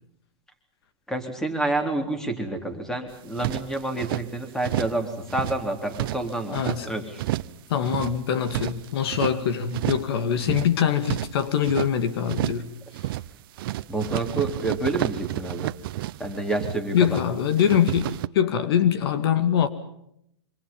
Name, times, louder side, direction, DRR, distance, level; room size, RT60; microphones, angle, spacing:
voice 1, 1.1-7.2 13.9-15.7 16.2-17.2, right 2 dB, 5° left, 6 dB, 3.7 m, -28 dB
sound 1, 3.1-4.3 4.6-5.0 5.3-6.8 7.2-7.6 7.8-9.4 9.7-10.1 10.4-11.9 12.3-12.7 12.9-13.3 13.6-17.2 17.5-18.3, right 15 dB, 50° right, 0.9 m, -31 dB
voice 2, 6.5-6.9 7.7-12.7 16.9-19.7, left 8 dB, 60° left, 11 dB, 2.2 m, -23 dB
27.5 x 25.5 x 5.5 m, 0.74 s
hypercardioid pair, 145°, 15 cm